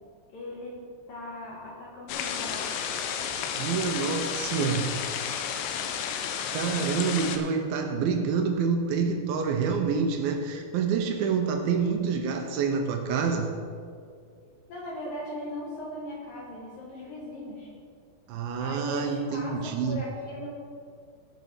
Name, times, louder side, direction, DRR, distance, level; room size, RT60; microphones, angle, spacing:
voice 1, 0.3-3.0 14.7-17.7 18.6-20.5, left 1 dB, 65° left, -5 dB, 2.8 m, -39 dB
sound 1, 2.1-7.4, left 8 dB, 85° left, 2.9 m, -32 dB
voice 2, 3.6-5.1 6.0-6.1 6.5-13.5 18.3-20.0, right 5 dB, 80° right, 4 dB, 2.2 m, -27 dB
17.0 x 5.8 x 4.3 m, 2.2 s
omnidirectional pair, 5.0 m